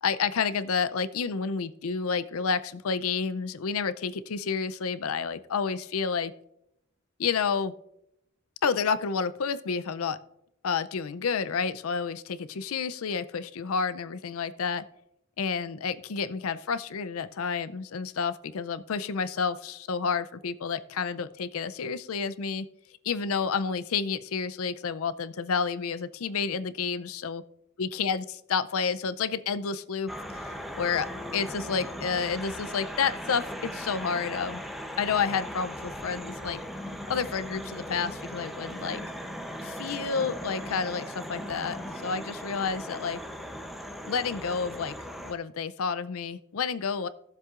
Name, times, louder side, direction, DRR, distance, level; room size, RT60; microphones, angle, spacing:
voice 1, 0.0-6.3 7.2-7.7 8.6-10.2 10.6-14.8 15.4-22.7 23.0-27.4 27.8-34.6 35.0-36.6 37.1-39.0 39.6-43.2 44.0-45.0 45.2-47.1, left 5 dB, 80° left, 14 dB, 0.5 m, -30 dB
sound 1, 30.1-45.3, equal, ahead, 0.7 m, -38 dB
17.0 x 7.4 x 2.5 m, 0.79 s
head